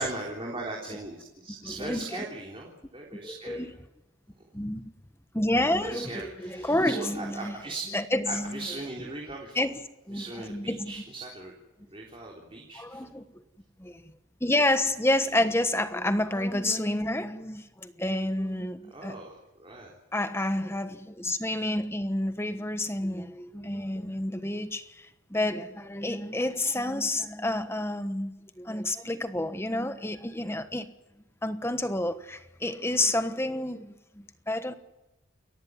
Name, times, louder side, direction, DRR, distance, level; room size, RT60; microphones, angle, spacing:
voice 1, 0.0-3.7 5.8-7.8 8.2-9.7 10.1-11.5 11.8-13.1 18.9-19.9, right 2 dB, 25° right, 3.7 m, -39 dB
voice 2, 1.8-2.2 3.2-3.7 4.5-4.8 5.3-6.1 6.4-7.5 7.9-8.7 9.5-9.7 10.1-10.9 12.7-13.2 13.8-13.9 14.4-19.2 20.1-24.9 25.3-30.9 31.4-34.7, left 1 dB, 10° left, 1.2 m, -29 dB
29.5 x 14.0 x 9.5 m
head